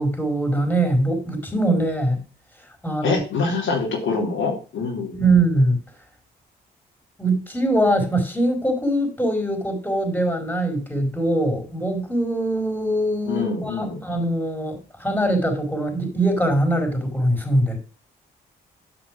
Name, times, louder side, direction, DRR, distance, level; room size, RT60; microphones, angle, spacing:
voice 1, 0.0-2.2 2.8-3.2 5.1-5.8 7.2-17.8, right 1 dB, 10° left, 4.7 m, -22 dB
voice 2, 3.0-5.2 13.3-14.0, left 4 dB, 75° left, 3.3 m, -25 dB
7.9 x 6.0 x 6.1 m
supercardioid pair, 50°, 21 cm